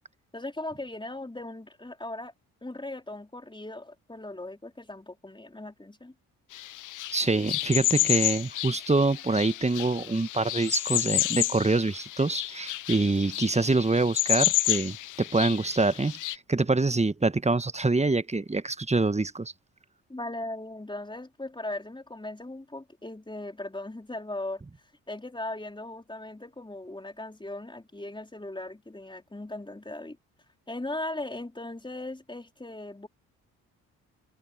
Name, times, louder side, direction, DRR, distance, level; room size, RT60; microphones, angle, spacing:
voice 1, 0.3-2.3 2.6-6.1 20.1-30.2 30.7-33.1, left 2 dB, 10° left, 4.3 m, -38 dB
sound 1, 6.5-16.4, left 15 dB, 50° left, 0.5 m, -30 dB
voice 2, 7.1-19.5, right 3 dB, 15° right, 1.4 m, -25 dB
hypercardioid pair, 45°, 41 cm